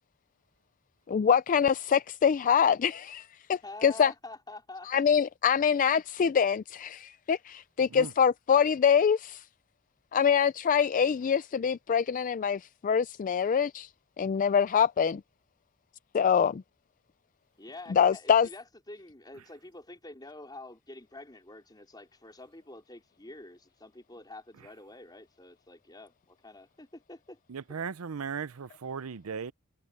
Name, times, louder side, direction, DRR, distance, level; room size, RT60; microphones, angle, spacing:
voice 1, 1.1-4.1 4.9-9.4 10.1-13.9 14.2-15.2 16.1-16.6 17.9-18.5, left 7 dB, 35° left, 0.3 m, -25 dB
voice 2, 3.6-4.9 17.6-27.4, left 2 dB, 20° left, 4.3 m, -47 dB
voice 3, 27.5-29.5, right 6 dB, 75° right, 0.6 m, -37 dB
head